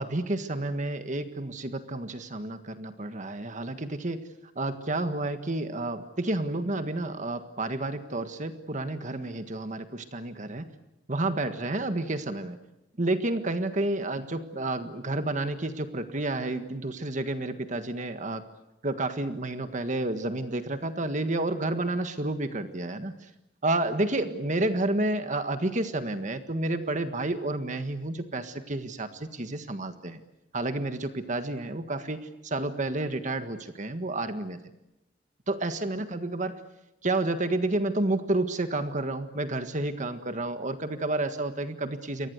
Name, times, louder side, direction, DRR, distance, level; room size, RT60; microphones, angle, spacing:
voice 1, 0.0-4.2 4.6-10.7 11.1-12.6 13.0-18.4 18.8-23.1 23.6-30.2 30.5-34.6 35.5-36.6 37.0-42.3, right 2 dB, 45° right, 8 dB, 1.6 m, -30 dB
29.5 x 24.0 x 8.2 m, 0.89 s
head